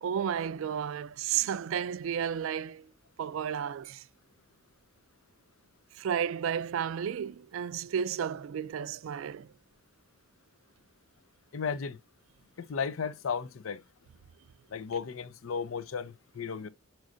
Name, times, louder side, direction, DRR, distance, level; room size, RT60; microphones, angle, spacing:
voice 1, 0.0-2.9 3.2-4.1 5.9-9.5, right 8 dB, 65° right, 0.3 m, -32 dB
voice 2, 11.5-12.0 12.6-13.8 14.7-16.7, left 6 dB, 70° left, 0.5 m, -34 dB
6.2 x 3.1 x 2.5 m
head